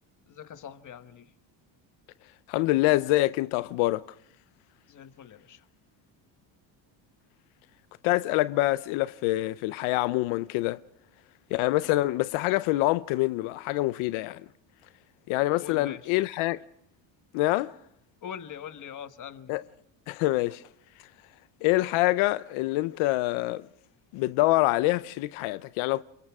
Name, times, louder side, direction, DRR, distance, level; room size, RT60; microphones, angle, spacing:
voice 1, 0.3-1.3 4.9-5.7 15.6-16.2 18.2-19.6, left 8 dB, 40° left, 1.4 m, -43 dB
voice 2, 2.5-4.0 8.0-10.8 11.5-14.5 15.3-16.6 17.3-17.8 19.5-19.6 20.1-20.6 21.0-21.1 21.6-23.7 24.1-26.0, left 18 dB, 80° left, 0.7 m, -26 dB
29.5 x 27.5 x 3.6 m
cardioid pair, 130°, 48 cm